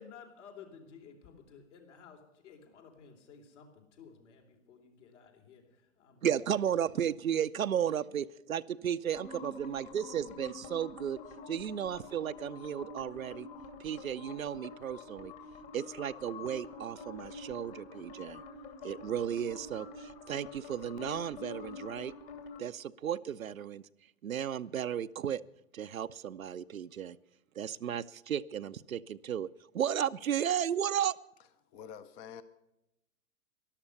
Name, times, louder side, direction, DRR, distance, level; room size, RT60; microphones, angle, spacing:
voice 1, 0.0-6.3, left 6 dB, 60° left, 3 dB, 3.6 m, -54 dB
voice 2, 6.2-11.2 11.5-13.5 13.8-15.3 15.7-18.4 18.8-22.1 22.6-23.8 24.2-25.4 25.7-27.2 27.5-31.2, right 9 dB, 90° right, 12 dB, 0.6 m, -34 dB
sound 1, 9.1-22.6, left 3 dB, 40° left, 2.8 m, -47 dB
voice 3, 31.7-32.4, left 8 dB, 15° left, 15 dB, 0.4 m, -47 dB
13.0 x 11.5 x 6.6 m, 0.86 s
figure-of-eight pair, 110°, 40 cm